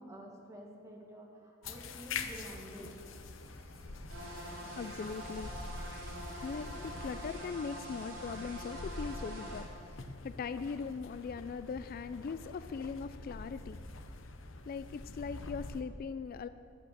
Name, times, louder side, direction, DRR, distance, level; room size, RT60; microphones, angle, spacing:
voice 1, 0.0-2.9, right 1 dB, 15° right, -1 dB, 1.8 m, -49 dB
sound 1, 1.6-15.8, left 3 dB, 70° left, 0.8 m, -45 dB
sound 2, 2.3-10.0, right 1 dB, 55° right, 2.6 m, -64 dB
sound 3, 4.1-9.6, right 1 dB, 85° right, 3.5 m, -45 dB
voice 2, 4.8-13.8 14.6-16.5, left 5 dB, 45° left, 13 dB, 0.3 m, -41 dB
11.5 x 8.6 x 6.7 m, 2.3 s
head